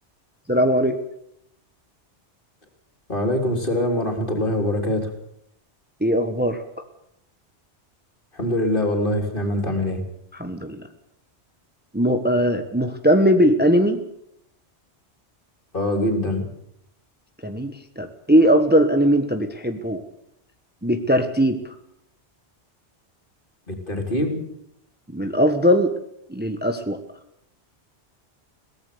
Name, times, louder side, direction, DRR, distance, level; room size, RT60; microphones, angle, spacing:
voice 1, 0.5-1.0 6.0-6.6 10.3-10.9 11.9-14.0 17.4-20.0 20.8-21.7 25.1-25.9 26.3-27.0, equal, 10° right, 7 dB, 1.3 m, -20 dB
voice 2, 3.1-5.1 8.3-10.0 15.7-16.5 23.7-24.4, left 1 dB, 50° left, 3 dB, 3.7 m, -23 dB
22.0 x 17.5 x 6.9 m, 0.74 s
omnidirectional pair, 1.1 m